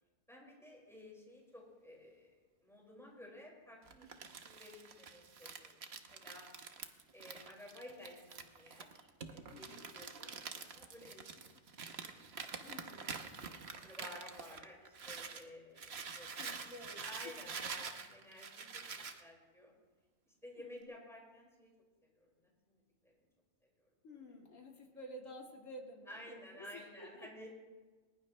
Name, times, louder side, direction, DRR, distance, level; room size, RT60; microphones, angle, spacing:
voice 1, 0.3-4.1 4.4-6.5 7.1-11.5 12.4-12.5 13.2-13.3 13.8-16.3 17.0-18.8 19.2-19.7 20.3-21.7 22.1-22.3 22.7-22.8 23.0-23.1 23.8-23.9 26.1-27.5, left 1 dB, ahead, -3 dB, 5.4 m, -54 dB
Crumpling crinkling, 3.9-15.4 15.8-19.2, right 5 dB, 55° right, 1.2 m, -47 dB
voice 2, 9.5-9.8 12.6-13.3 16.3-17.3 18.9-19.0 20.6-20.9 24.0-27.3, left 1 dB, 75° left, 1 dB, 2.4 m, -52 dB
21.0 x 20.5 x 3.2 m, 1.3 s
omnidirectional pair, 1.4 m